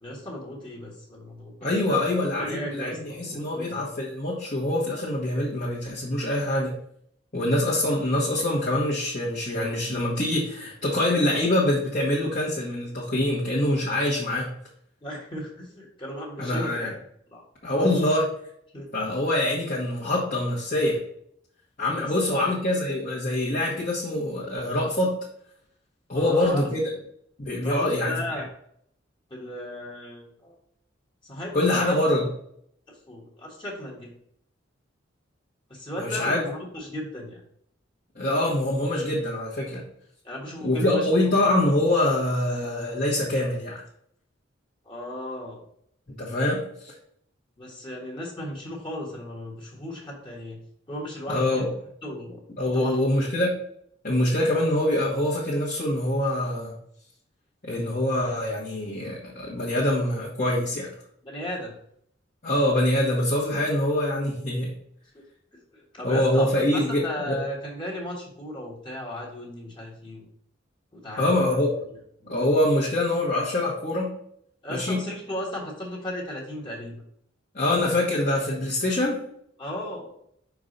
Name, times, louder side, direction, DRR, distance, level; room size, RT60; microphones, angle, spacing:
voice 1, 0.0-2.0 2.4-3.8 15.0-16.9 17.3-17.4 18.7-18.9 22.0-22.5 26.1-26.7 27.6-28.5 29.3-30.6 31.2-31.9 33.1-34.1 35.7-37.4 40.2-41.1 44.8-45.6 47.6-51.5 52.0-52.4 52.7-53.0 61.2-61.7 65.1-65.2 65.7-70.3 70.9-71.4 72.2-72.3 74.6-77.0 79.6-80.1, left 1 dB, 25° left, -3 dB, 1.3 m, -35 dB
voice 2, 1.6-6.7 7.3-14.5 16.4-16.9 17.6-18.3 18.9-21.0 21.8-25.1 26.1-26.8 27.4-28.2 31.5-32.3 36.0-36.4 38.1-39.8 40.6-43.8 46.2-46.9 51.3-51.7 52.6-53.5 54.0-56.7 57.6-60.9 62.4-64.7 66.0-67.4 71.2-71.8 72.3-74.1 74.7-75.0 77.5-79.2, left 1 dB, 45° left, -6 dB, 1.3 m, -24 dB
5.5 x 4.7 x 3.8 m, 0.69 s
head